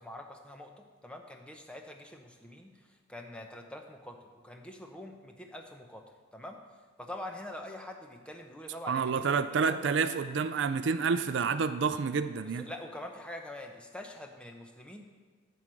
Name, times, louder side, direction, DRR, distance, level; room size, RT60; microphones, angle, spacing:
voice 1, 0.0-2.7 3.1-6.0 6.3-6.6 7.0-9.8 12.4-15.1, left 1 dB, 5° left, 3 dB, 0.8 m, -45 dB
voice 2, 8.9-12.6, right 5 dB, 60° right, 12 dB, 0.4 m, -29 dB
11.0 x 4.7 x 7.6 m, 1.5 s
head